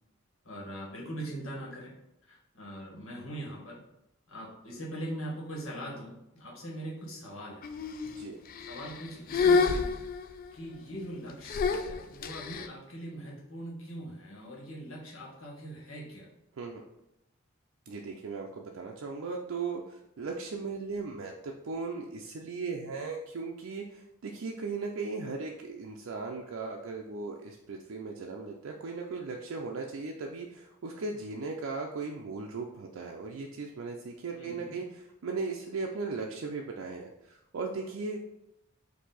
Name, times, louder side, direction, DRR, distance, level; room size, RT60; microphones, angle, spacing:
voice 1, 0.4-1.9 2.2-3.8 4.3-7.6 8.6-10.0 10.5-16.3 34.3-34.8, right 1 dB, 80° left, -3 dB, 1.6 m, -41 dB
sound 1, 7.6-8.2 8.6-9.0 9.3-10.5 11.5-12.7, left 5 dB, 45° left, 0.3 m, -28 dB
voice 2, 8.0-8.4 16.6-16.8 17.9-38.2, right 4 dB, 75° right, 1 dB, 0.4 m, -37 dB
4.5 x 2.7 x 4.0 m, 0.85 s
head